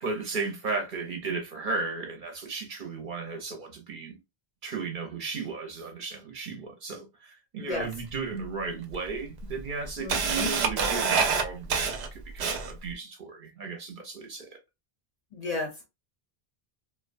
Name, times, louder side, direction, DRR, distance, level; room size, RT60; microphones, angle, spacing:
voice 1, 0.0-4.1 4.6-14.5, right 4 dB, 55° right, 0.8 m, -35 dB
Camera, 7.9-8.0 8.9-9.0 9.4-12.9, right 5 dB, 90° right, 0.9 m, -26 dB
voice 2, 10.0-10.5 15.3-15.7, left 3 dB, 45° left, 0.6 m, -32 dB
2.4 x 2.1 x 2.5 m
omnidirectional pair, 1.1 m